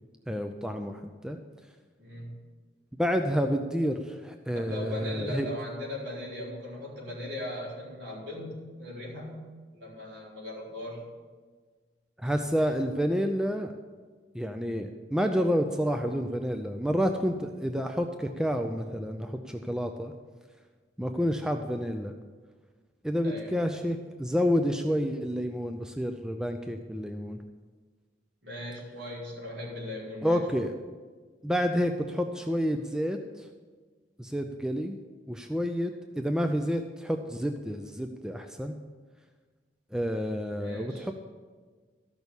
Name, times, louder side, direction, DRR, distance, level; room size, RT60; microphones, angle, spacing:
voice 1, 0.3-1.4 3.0-5.5 12.2-13.7 14.3-20.1 21.0-22.1 23.0-27.4 30.2-30.7 31.4-33.5 34.2-35.0 35.3-38.8 39.9-41.1, equal, 5° right, 5 dB, 0.5 m, -29 dB
voice 2, 2.0-2.3 4.5-9.4 9.7-11.0 23.2-23.6 28.4-30.5 40.6-41.1, left 1 dB, 70° right, -4 dB, 4.1 m, -38 dB
13.5 x 6.3 x 7.0 m, 1.5 s
head